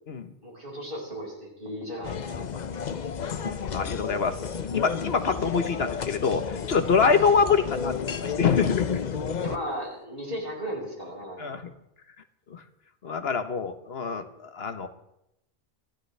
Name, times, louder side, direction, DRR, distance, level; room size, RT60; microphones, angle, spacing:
voice 1, 0.4-2.2 2.5-2.6 9.4-11.6, equal, 60° right, -3 dB, 6.0 m, -35 dB
sound 1, 2.0-9.6, left 6 dB, 50° left, 0.8 m, -31 dB
voice 2, 3.7-8.9 11.4-11.7 12.5-12.6 13.0-14.9, left 5 dB, 80° left, 8 dB, 1.4 m, -25 dB
24.0 x 14.5 x 3.4 m, 0.81 s
omnidirectional pair, 1.0 m